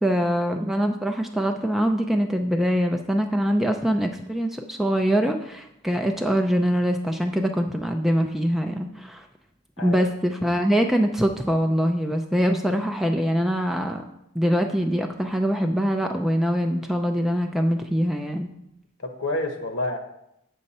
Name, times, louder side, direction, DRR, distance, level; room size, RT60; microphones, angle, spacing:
voice 1, 0.0-9.3 9.8-14.0 14.3-18.5, equal, ahead, 3 dB, 0.4 m, -23 dB
voice 2, 9.8-10.1 19.0-20.0, left 2 dB, 60° left, 5 dB, 1.1 m, -29 dB
7.9 x 6.4 x 4.2 m, 0.81 s
head